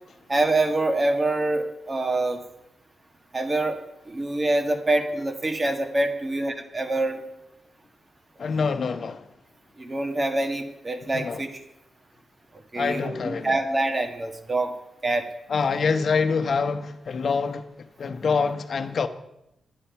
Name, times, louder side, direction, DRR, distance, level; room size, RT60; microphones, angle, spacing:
voice 1, 0.3-2.4 3.3-3.8 4.1-7.2 9.8-11.6 12.7-14.7 15.0-15.2, right 2 dB, 30° right, 1.5 m, -25 dB
voice 2, 8.4-9.2 11.1-11.4 12.7-13.6 15.5-17.6 18.0-19.1, left 5 dB, 60° left, 0.9 m, -25 dB
10.0 x 9.9 x 5.7 m
cardioid pair, 80°, 0 cm